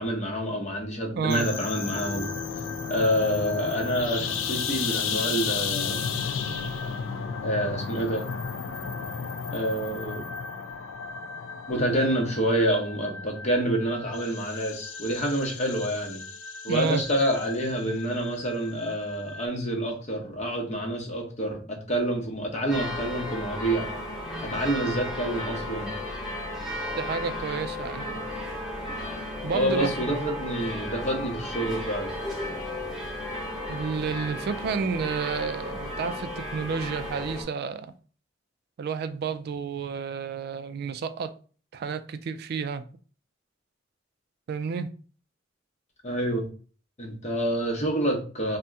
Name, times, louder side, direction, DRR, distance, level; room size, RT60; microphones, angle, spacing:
voice 1, 0.0-2.3 2.9-6.0 7.4-8.2 9.5-10.2 11.7-16.2 16.6-23.9 24.4-25.9 28.1-28.2 29.5-32.1 46.0-46.5 47.0-48.6, right 1 dB, 35° left, 0.8 m, -27 dB
voice 2, 1.2-1.5 16.7-17.0 27.0-28.1 29.4-30.1 33.7-37.9 38.8-41.3 41.7-42.8 44.5-44.9, right 5 dB, 55° right, 0.3 m, -30 dB
sound 1, 1.3-19.5, left 6 dB, 75° left, 0.3 m, -34 dB
sound 2, 1.9-8.2, left 4 dB, 30° right, 0.7 m, -43 dB
sound 3, 22.7-37.4, left 1 dB, ahead, 0.9 m, -34 dB
2.7 x 2.1 x 3.4 m
head